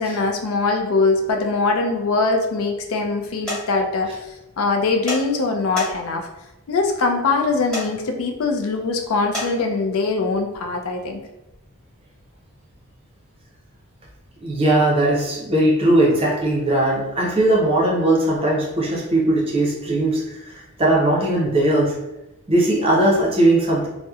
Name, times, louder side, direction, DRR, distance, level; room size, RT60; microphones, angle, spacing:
voice 1, 0.0-6.3 6.7-11.2, left 3 dB, 70° left, 3 dB, 0.4 m, -22 dB
sound 1, 3.5-3.6 5.1-5.2 5.8-6.2 7.7-7.9 9.3-9.5, equal, 5° left, 1.4 m, -26 dB
voice 2, 14.4-22.0 22.5-23.9, right 1 dB, 25° right, -3 dB, 0.6 m, -19 dB
2.8 x 2.0 x 2.3 m, 0.96 s
head